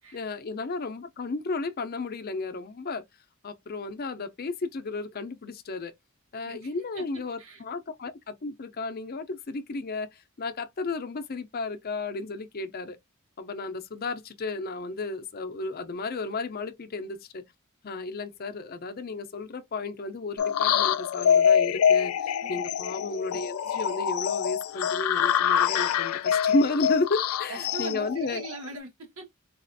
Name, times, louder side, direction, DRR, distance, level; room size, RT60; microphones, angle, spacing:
voice 1, 0.1-3.0 3.4-5.9 6.3-13.0 13.4-17.4 17.8-28.4, left 3 dB, 45° left, 0.6 m, -33 dB
voice 2, 6.5-7.6 22.4-22.7 27.5-29.4, right 3 dB, 85° right, 1.6 m, -41 dB
sound 1, 20.4-28.8, left 8 dB, 90° left, 0.4 m, -25 dB
4.1 x 2.4 x 2.6 m
head